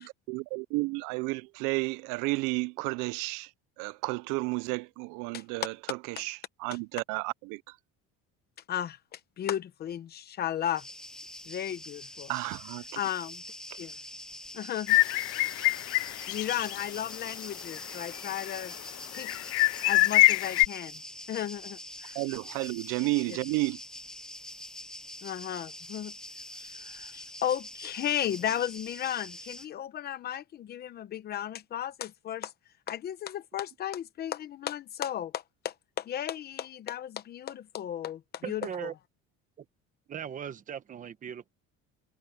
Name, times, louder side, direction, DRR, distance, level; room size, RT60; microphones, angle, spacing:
voice 1, 0.0-3.5 3.8-7.8 12.3-13.0 13.7-13.8 22.1-23.8, right 25 dB, 90° right, 0.5 m, -32 dB
voice 2, 8.7-10.8 11.5-12.3 13.0-13.4 13.8-13.9 14.5-15.0 15.9-18.7 19.1-19.3 19.9-21.0 21.3-22.2 23.3-23.4 25.2-26.1 26.6-32.5 32.9-38.9, left 10 dB, 30° left, 0.9 m, -35 dB
sound 1, 10.8-29.7, left 1 dB, ahead, 0.6 m, -45 dB
sound 2, 14.9-16.8 17.1-17.2 17.7-18.6 19.2-20.7, left 22 dB, 55° left, 0.4 m, -25 dB
voice 3, 38.4-38.9 39.6-39.7 40.1-41.5, right 8 dB, 25° right, 1.1 m, -38 dB
cardioid pair, 180°, 30 cm